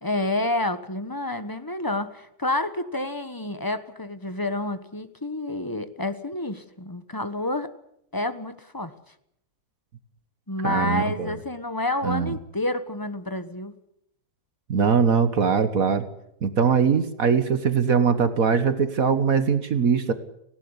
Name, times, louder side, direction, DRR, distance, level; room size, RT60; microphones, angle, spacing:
voice 1, 0.0-7.7 8.1-8.9 10.5-13.7, left 1 dB, 15° left, 11 dB, 1.2 m, -29 dB
voice 2, 10.6-11.3 12.0-12.3 14.7-16.0 16.4-20.1, right 6 dB, 55° right, 11 dB, 1.7 m, -21 dB
19.0 x 18.0 x 9.8 m, 0.74 s
omnidirectional pair, 1.8 m